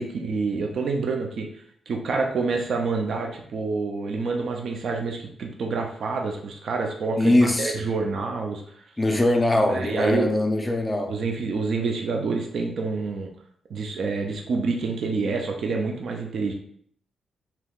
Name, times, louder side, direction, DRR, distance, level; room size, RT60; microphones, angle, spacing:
voice 1, 0.0-1.5 1.9-8.6 9.6-10.3 11.1-13.3 13.7-16.5, right 4 dB, 60° right, 2 dB, 0.4 m, -27 dB
voice 2, 7.2-7.8 9.0-11.1, left 1 dB, 15° left, 3 dB, 0.5 m, -21 dB
3.5 x 2.9 x 2.3 m, 0.64 s
cardioid pair, 130°, 0 cm